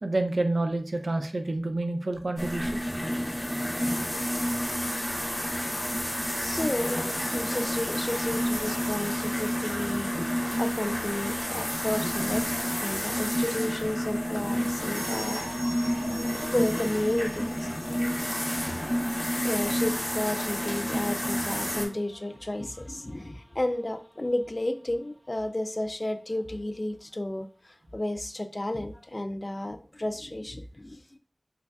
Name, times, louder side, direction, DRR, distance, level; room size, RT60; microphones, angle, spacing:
voice 1, 0.0-3.1 6.0-6.1, right 2 dB, 75° right, 0.4 m, -29 dB
sound 1, 2.4-21.8, equal, 20° left, 0.8 m, -30 dB
voice 2, 6.0-12.5 12.8-16.1 16.5-17.7 19.4-31.2, left 1 dB, 40° left, 0.3 m, -32 dB
sound 2, 14.9-25.5 25.7-25.8 26.1-26.2 26.8-26.9, equal, 10° right, 1.3 m, -47 dB
3.5 x 3.1 x 2.3 m
wide cardioid pair, 55°, 0 cm